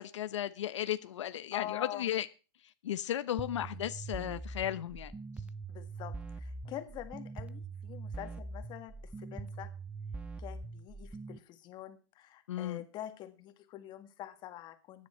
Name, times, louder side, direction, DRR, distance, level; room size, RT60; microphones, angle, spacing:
voice 1, 0.0-2.3 2.8-5.1 12.5-12.8, left 11 dB, 90° left, 11 dB, 1.0 m, -35 dB
voice 2, 1.5-2.1 5.7-9.7 10.4-15.1, left 12 dB, 30° left, 8 dB, 1.8 m, -45 dB
sound 1, 3.4-11.4, right 3 dB, 10° right, 0.6 m, -43 dB
16.5 x 10.5 x 4.4 m, 0.34 s
supercardioid pair, 150°, 15 cm